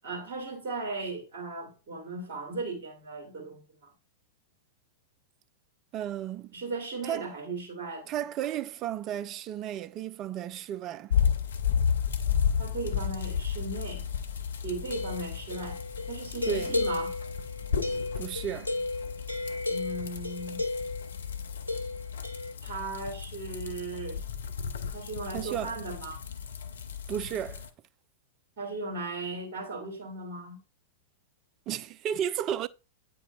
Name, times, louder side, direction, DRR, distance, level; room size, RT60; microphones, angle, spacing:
voice 1, 0.0-3.9 6.5-8.1 12.6-14.0 14.6-15.8 16.1-17.2 19.7-20.6 22.6-24.2 24.9-26.2 28.6-30.6, right 3 dB, 55° right, 2.5 m, -37 dB
voice 2, 5.9-6.5 7.0-7.3 8.1-11.1 16.5-16.7 18.2-18.7 25.3-25.8 27.1-27.6 31.7-32.7, right 10 dB, 35° right, 0.4 m, -33 dB
sound 1, 11.1-27.7, left 7 dB, 70° left, 0.6 m, -33 dB
sound 2, 14.8-21.1 21.7-22.5, left 2 dB, 90° right, 0.8 m, -34 dB
8.6 x 5.4 x 2.3 m
figure-of-eight pair, 95°, 0 cm